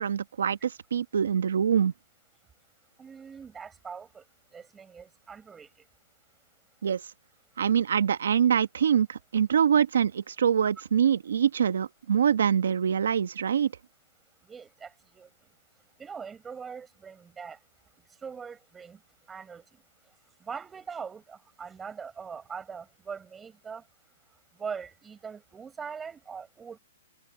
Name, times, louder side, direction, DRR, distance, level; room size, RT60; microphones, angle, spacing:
voice 1, 0.0-1.9 6.8-7.0 7.6-13.7, right 8 dB, 80° right, 1.2 m, -24 dB
voice 2, 3.0-4.2 4.5-5.7 14.4-15.3 16.0-17.6 18.2-19.0 19.3-19.8 20.4-23.8 24.6-26.8, right 6 dB, 10° right, 7.8 m, -41 dB
hypercardioid pair, 160°, 0 cm